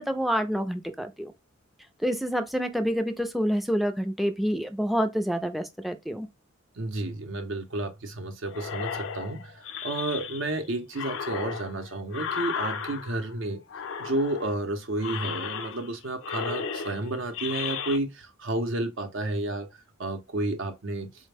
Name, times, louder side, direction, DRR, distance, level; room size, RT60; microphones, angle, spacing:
voice 1, 0.0-1.3 2.0-6.3, equal, ahead, 0.4 m, -27 dB
voice 2, 6.8-13.6 14.0-19.7 20.0-21.1, right 2 dB, 65° right, 0.7 m, -31 dB
sound 1, 8.5-10.6 10.9-13.3 13.7-14.6 15.0-16.0 16.2-18.0, left 7 dB, 65° left, 0.4 m, -35 dB
4.1 x 2.1 x 3.3 m
head